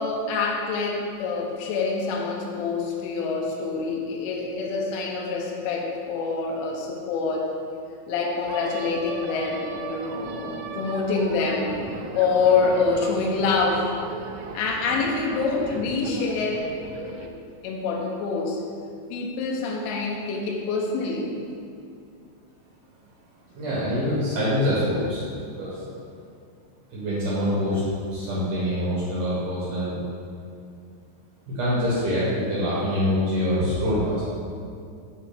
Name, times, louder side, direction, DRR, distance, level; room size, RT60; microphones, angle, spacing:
voice 1, 0.0-7.5 8.1-11.7 12.1-13.8 14.5-16.6 17.0-17.3 17.6-18.6 19.1-21.3, left 4 dB, 80° left, -1 dB, 3.3 m, -26 dB
sound 1, 8.5-17.3, right 5 dB, 90° right, 3.3 m, -37 dB
voice 2, 23.5-25.2 25.5-25.8 26.9-27.8 28.1-30.0 31.5-34.2, equal, 70° right, -9 dB, 1.9 m, -25 dB
9.1 x 3.3 x 5.0 m, 2.4 s
omnidirectional pair, 5.9 m